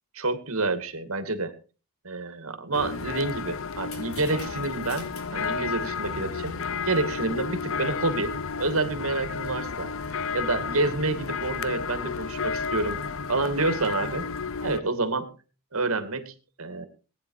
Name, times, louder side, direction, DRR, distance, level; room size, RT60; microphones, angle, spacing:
voice 1, 0.1-1.5 2.0-6.6 6.9-9.9 10.3-13.0 13.3-14.3 14.6-15.3 15.7-16.3 16.6-16.9, right 3 dB, 80° right, 9 dB, 2.4 m, -28 dB
sound 1, 2.7-14.8, left 5 dB, 65° left, 0.7 m, -32 dB
sound 2, 2.8-7.8, left 3 dB, 90° left, 5.0 m, -49 dB
19.5 x 10.0 x 4.8 m, 0.37 s
head